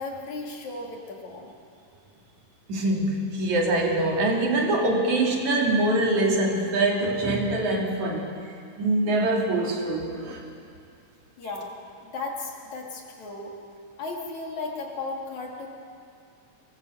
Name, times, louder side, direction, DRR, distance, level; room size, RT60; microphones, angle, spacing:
voice 1, 0.0-1.5 11.4-11.7 12.0-13.5 14.0-15.7, left 3 dB, 60° left, -1 dB, 3.8 m, -35 dB
voice 2, 2.7-8.3 8.8-10.4, right 2 dB, 60° right, 0 dB, 3.6 m, -24 dB
23.5 x 19.5 x 7.9 m, 2.4 s
omnidirectional pair, 4.0 m